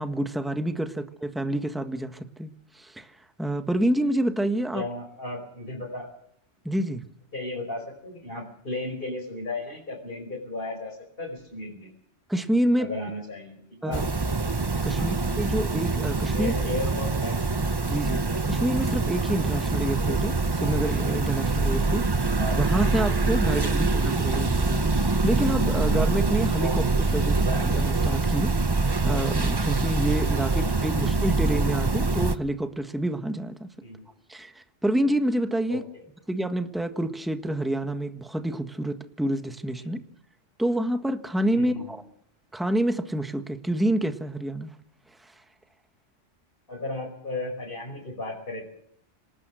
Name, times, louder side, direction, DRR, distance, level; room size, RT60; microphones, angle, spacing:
voice 1, 0.0-3.1 3.4-4.8 6.6-7.0 12.3-12.9 13.8-14.0 14.8-16.5 17.9-18.2 18.4-22.1 22.5-28.5 29.0-33.7 34.3-35.8 36.3-40.0 40.6-42.0 42.5-44.7 45.2-45.3, right 1 dB, ahead, 7 dB, 1.4 m, -28 dB
voice 2, 4.7-6.1 7.3-11.9 12.8-14.1 15.0-15.2 16.3-17.4 23.7-23.8 30.5-30.6 33.8-34.1 35.7-36.0 39.8-40.0 41.5-42.0 46.7-48.7, left 2 dB, 45° left, -2 dB, 5.4 m, -35 dB
sound 1, 13.9-32.4, right 3 dB, 20° right, 0.8 m, -24 dB
27.0 x 18.5 x 6.4 m, 0.70 s
omnidirectional pair, 1.3 m